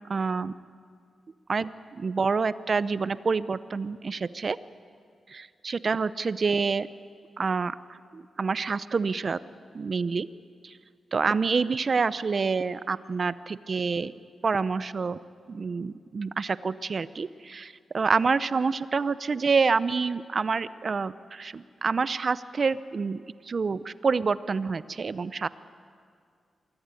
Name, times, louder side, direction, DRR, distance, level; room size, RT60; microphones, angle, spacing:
voice 1, 0.1-0.5 1.5-4.6 5.3-6.9 7.4-7.7 8.1-9.4 9.7-10.3 10.6-10.7 11.1-14.1 14.4-15.2 15.5-25.5, right 4 dB, 50° right, 16 dB, 0.6 m, -27 dB
24.0 x 14.5 x 9.1 m, 2.2 s
cardioid pair, 70°, 0 cm